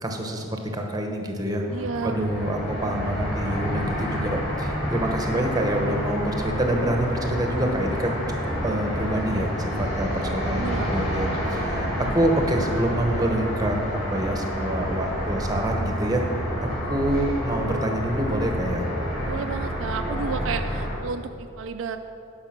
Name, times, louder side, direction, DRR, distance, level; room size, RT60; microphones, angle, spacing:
voice 1, 0.0-1.6 2.0-13.8 14.1-16.2 16.9-18.8, right 1 dB, 15° right, 3 dB, 0.9 m, -26 dB
sound 1, 1.7-20.9, equal, 25° left, 2.5 m, -29 dB
voice 2, 1.7-2.8 10.5-11.4 11.9-12.1 19.2-22.0, right 5 dB, 65° right, 7 dB, 0.4 m, -32 dB
11.0 x 5.6 x 5.9 m, 2.7 s
head